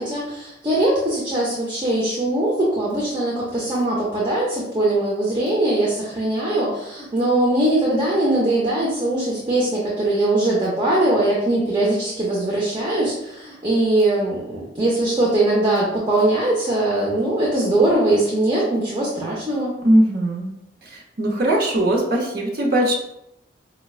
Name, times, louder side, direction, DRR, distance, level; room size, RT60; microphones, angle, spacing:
voice 1, 0.0-19.7, right 1 dB, 25° right, -5 dB, 0.6 m, -21 dB
voice 2, 19.8-20.5 20.8-22.9, right 1 dB, 55° right, -1 dB, 0.8 m, -20 dB
5.0 x 2.2 x 2.4 m, 0.83 s
head